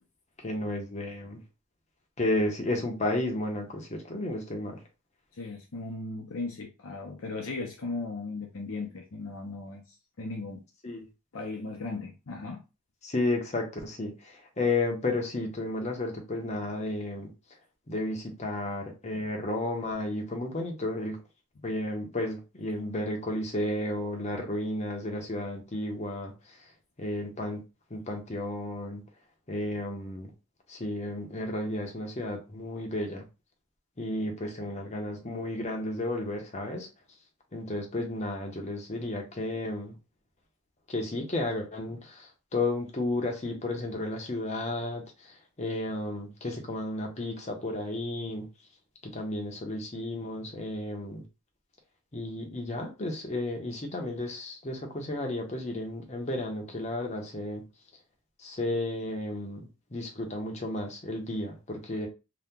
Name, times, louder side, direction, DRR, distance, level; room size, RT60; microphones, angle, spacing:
voice 1, 0.4-1.4 2.2-4.8 10.8-11.0 13.0-17.3 17.9-21.2 21.6-26.3 27.0-27.6 27.9-29.0 29.5-30.3 30.7-33.2 34.0-36.9 37.5-39.9 40.9-45.0 45.6-48.5 49.0-51.2 52.1-57.6 58.4-59.6 59.9-62.1, left 2 dB, 30° left, 0.7 m, -32 dB
voice 2, 5.3-9.8 10.2-10.6 11.3-12.6 19.1-19.2, left 3 dB, 65° left, 0.6 m, -37 dB
2.8 x 2.2 x 3.5 m
head